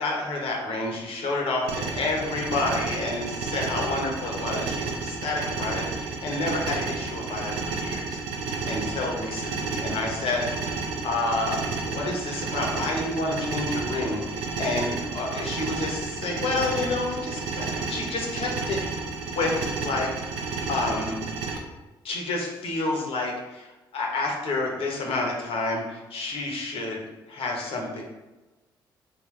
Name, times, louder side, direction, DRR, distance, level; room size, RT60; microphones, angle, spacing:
voice 1, 0.0-10.5 11.0-18.8 19.4-20.1 20.7-21.2 22.0-27.0 27.3-28.0, left 2 dB, 55° left, -1 dB, 1.0 m, -29 dB
sound 1, 1.7-21.6, right 4 dB, 75° right, 0.5 m, -31 dB
3.7 x 2.8 x 3.1 m, 1.1 s
hypercardioid pair, 45°, 11 cm